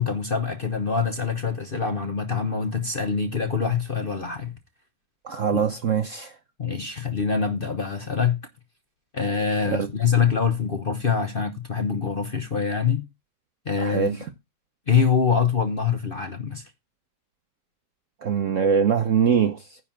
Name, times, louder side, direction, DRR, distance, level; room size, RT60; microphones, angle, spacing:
voice 1, 0.0-4.5 5.5-5.6 6.6-8.4 9.1-13.0 13.7-14.2 14.9-16.6, left 6 dB, 40° left, 0.9 m, -24 dB
voice 2, 5.2-6.3 9.6-9.9 13.8-14.1 18.2-19.8, right 7 dB, 55° right, 0.9 m, -23 dB
9.9 x 4.3 x 7.3 m
omnidirectional pair, 2.1 m